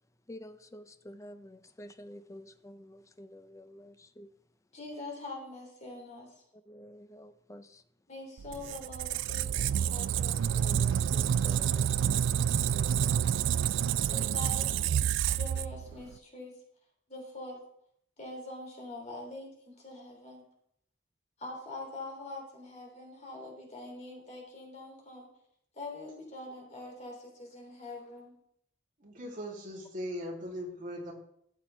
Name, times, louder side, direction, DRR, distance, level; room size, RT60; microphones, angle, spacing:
voice 1, 0.3-4.3 6.5-7.8 10.5-12.3 12.6-13.1, left 1 dB, 15° left, 0.5 m, -49 dB
voice 2, 4.7-6.4 8.1-10.4 14.1-14.7 15.3-16.6 17.1-17.6 18.2-20.4 21.4-25.3 25.7-28.3, left 2 dB, 40° left, 3.0 m, -44 dB
Squeak, 8.4-16.1, right 9 dB, 75° right, 0.3 m, -28 dB
voice 3, 29.0-31.1, equal, 45° right, 2.9 m, -39 dB
13.0 x 7.7 x 3.3 m
head